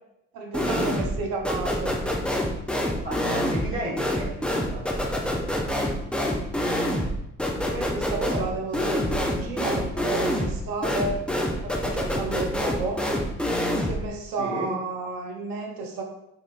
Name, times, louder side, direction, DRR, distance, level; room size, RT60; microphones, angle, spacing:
voice 1, 0.3-2.0 7.5-11.2 11.6-13.0 13.7-16.0, right 3 dB, 60° right, 1 dB, 0.7 m, -32 dB
sound 1, 0.5-1.2 1.4-14.1, equal, 5° left, 0.5 m, -26 dB
voice 2, 3.0-4.8 14.4-14.7, right 1 dB, 35° right, -6 dB, 1.2 m, -33 dB
4.0 x 2.5 x 2.5 m, 0.82 s
hypercardioid pair, 45°, 38 cm